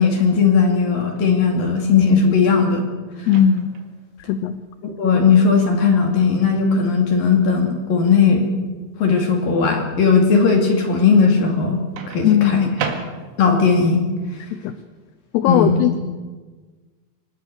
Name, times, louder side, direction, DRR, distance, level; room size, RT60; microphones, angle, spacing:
voice 1, 0.0-2.9 3.2-3.3 4.8-8.5 9.0-12.9 13.4-14.0 15.5-15.8, left 5 dB, 55° left, 2 dB, 3.7 m, -17 dB
voice 2, 3.3-3.7 4.3-4.6 12.2-12.7 14.5-14.7 15.3-16.0, left 9 dB, 75° left, 11 dB, 2.6 m, -18 dB
Microwave oven, 3.3-3.9 5.9-6.2 12.0-13.6, right 6 dB, 90° right, 4.5 m, -32 dB
26.0 x 19.0 x 6.8 m, 1.4 s
omnidirectional pair, 5.4 m